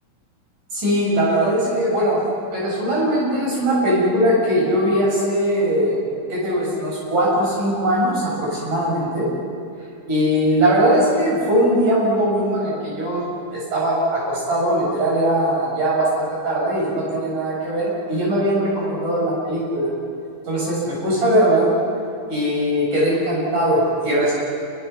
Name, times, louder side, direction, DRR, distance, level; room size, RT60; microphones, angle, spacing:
voice 1, 0.7-2.2 2.5-6.0 6.3-9.3 10.1-19.9 20.5-21.7 22.3-24.3, equal, 60° right, -5 dB, 9.4 m, -20 dB
28.0 x 25.5 x 6.0 m, 2.4 s
omnidirectional pair, 4.1 m